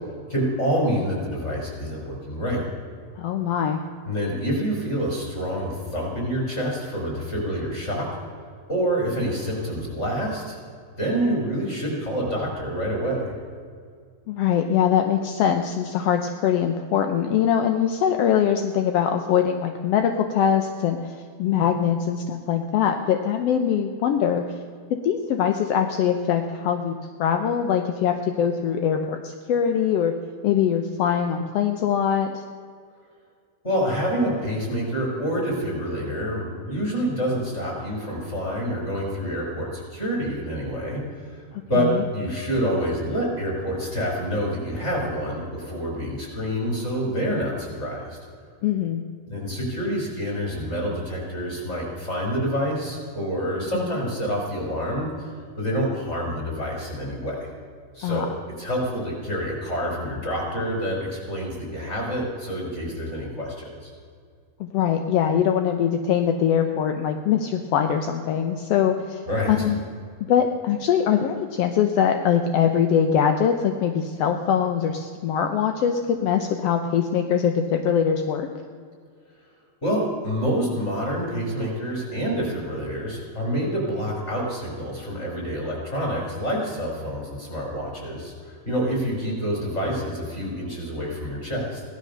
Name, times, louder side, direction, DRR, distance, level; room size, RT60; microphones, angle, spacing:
voice 1, 0.3-2.6 4.0-8.0 8.7-10.6 11.0-13.3 33.6-41.4 41.7-41.9 42.1-48.2 49.3-55.1 55.6-57.5 57.9-63.9 69.3-69.7 79.8-91.8, equal, 20° left, -2 dB, 4.8 m, -27 dB
voice 2, 3.2-3.8 14.3-24.4 24.9-30.1 30.4-32.4 41.7-42.0 48.6-49.0 53.7-54.0 58.0-58.3 64.6-69.2 69.5-69.8 70.3-78.5, left 8 dB, 70° left, 6 dB, 1.6 m, -22 dB
17.0 x 12.0 x 6.7 m, 2.1 s
omnidirectional pair, 3.6 m